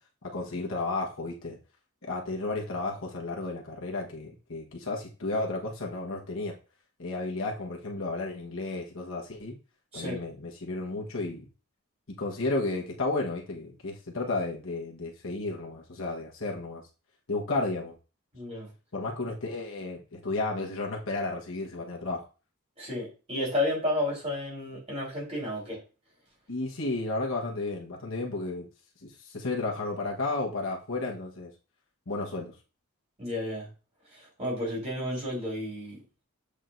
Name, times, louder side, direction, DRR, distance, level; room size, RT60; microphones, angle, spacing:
voice 1, 0.3-1.6 2.0-6.5 7.0-9.5 9.9-11.4 12.1-16.8 17.3-18.0 18.9-22.2 26.5-28.7 29.0-31.5 32.1-32.5, left 2 dB, 60° left, -2 dB, 1.2 m, -33 dB
voice 2, 18.3-18.7 22.8-25.8 33.2-33.7 34.1-36.0, left 1 dB, 30° right, -5 dB, 3.8 m, -32 dB
7.6 x 5.0 x 2.6 m, 0.33 s
head